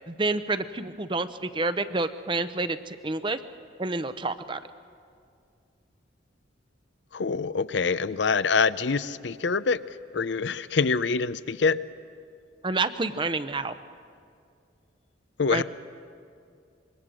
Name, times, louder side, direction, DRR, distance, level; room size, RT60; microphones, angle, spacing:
voice 1, 0.1-3.4 3.8-4.6 12.6-13.8 15.5-15.6, right 3 dB, 25° right, 12 dB, 0.7 m, -28 dB
voice 2, 7.1-9.8 10.1-11.8 15.4-15.6, left 4 dB, 70° left, 16 dB, 0.6 m, -25 dB
25.5 x 22.0 x 6.3 m, 2.4 s
head